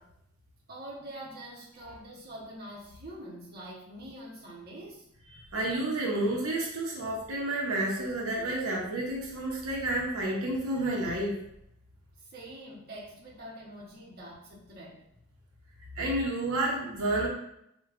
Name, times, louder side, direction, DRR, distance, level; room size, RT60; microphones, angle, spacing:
voice 1, 0.7-5.0 12.3-15.0, right 1 dB, 45° right, -5 dB, 0.8 m, -45 dB
voice 2, 5.3-11.4 16.0-17.3, right 1 dB, 90° right, -2 dB, 0.7 m, -30 dB
4.6 x 2.2 x 2.4 m, 0.77 s
head